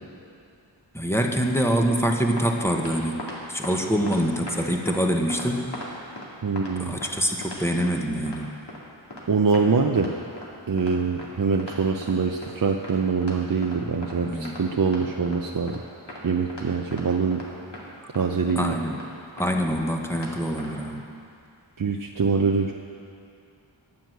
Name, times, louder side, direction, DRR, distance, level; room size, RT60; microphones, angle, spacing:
voice 1, 0.9-3.2 3.5-5.7 6.8-8.4 14.3-14.6 18.6-18.9 19.4-21.0, equal, 5° left, 2 dB, 1.1 m, -25 dB
sound 1, 2.4-2.5 2.8-3.4 3.6-3.8 4.1-4.6 4.9-5.0 5.3-6.3 6.6-6.7 7.0-7.1 7.4-7.9 8.3-8.4 8.7-8.8 9.1-9.2 9.5-9.6 10.0-10.1 10.4-10.5 10.8-10.9 11.2-11.3 11.6-12.1 12.4-12.5 12.8-12.9 13.2-13.4 13.6-14.2 14.4-15.4 15.7-15.8 16.1-16.2 16.5-16.6 16.9-17.0 17.3-17.5 17.7-17.8 18.1-18.2 18.5-18.7 18.9-19.1 19.4-19.5 19.8-19.9 20.1-20.3 20.6-20.7, left 1 dB, 60° left, 2.5 m, -38 dB
voice 2, 6.4-6.9 9.3-10.2 10.7-15.8 16.2-17.4 18.1-18.7 21.8-22.7, right 5 dB, 45° right, 3 dB, 0.6 m, -24 dB
9.6 x 9.4 x 7.8 m, 2.5 s
wide cardioid pair, 60°, 46 cm